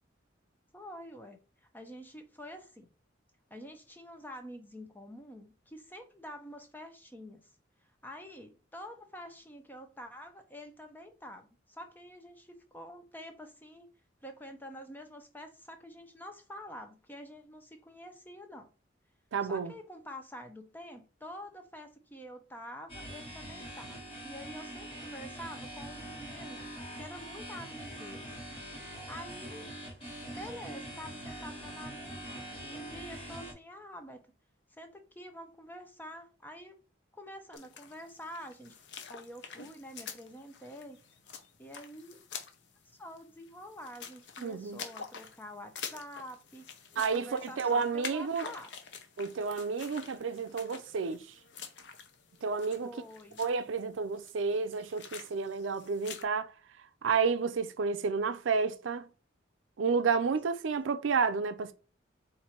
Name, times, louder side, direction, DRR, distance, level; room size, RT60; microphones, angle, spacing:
voice 1, 0.7-1.4 1.7-2.9 3.5-7.4 8.0-13.9 14.2-18.7 19.5-26.6 26.9-28.3 29.1-29.7 30.4-32.2 32.6-34.2 34.8-36.8 37.1-38.8 39.1-41.0 41.6-42.2 43.0-46.7 47.1-48.7 52.8-53.4, equal, 10° left, 0.6 m, -47 dB
voice 2, 19.3-19.7 44.4-44.8 47.0-48.4 49.2-51.2 52.4-52.9 53.4-56.5 57.0-59.1 59.8-61.7, right 5 dB, 85° right, 0.5 m, -30 dB
sound 1, 22.9-33.5, right 1 dB, 30° left, 1.3 m, -43 dB
sound 2, 37.5-56.2, left 6 dB, 65° left, 0.7 m, -47 dB
4.4 x 2.6 x 4.3 m
head